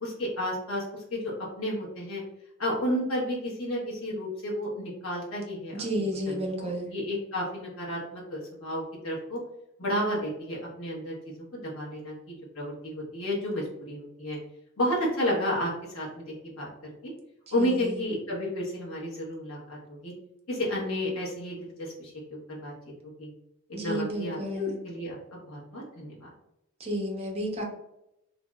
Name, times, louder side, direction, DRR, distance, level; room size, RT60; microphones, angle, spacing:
voice 1, 0.0-1.3 1.6-2.2 2.6-5.8 6.3-9.4 9.8-11.1 11.5-14.4 14.8-16.9 17.5-20.1 20.5-22.7 23.0-23.3 23.7-26.3, equal, 80° left, -5 dB, 1.0 m, -32 dB
voice 2, 5.7-6.9 17.5-18.0 23.7-24.8 26.8-27.6, equal, 30° right, 0 dB, 0.7 m, -32 dB
3.0 x 2.6 x 2.2 m, 0.85 s
head